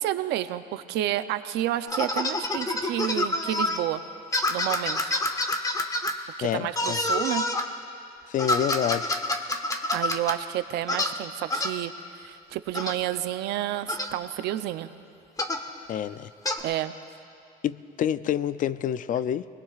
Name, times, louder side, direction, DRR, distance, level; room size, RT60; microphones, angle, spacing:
voice 1, 0.0-4.0 4.5-5.1 6.4-7.4 9.9-14.9 16.6-16.9, right 13 dB, 85° right, 11 dB, 0.7 m, -30 dB
sound 1, 1.9-3.8 4.3-6.1 6.8-7.7 8.4-10.4 10.9-11.1 11.5-11.8 12.7-13.0 13.9-14.1 15.4-15.7 16.5-16.6, left 2 dB, 20° left, 1.1 m, -27 dB
voice 2, 6.4-7.0 8.3-9.1 15.9-16.3 17.6-19.5, left 10 dB, 50° left, 15 dB, 0.5 m, -28 dB
28.5 x 20.5 x 2.5 m, 2.5 s
cardioid pair, 110°, 17 cm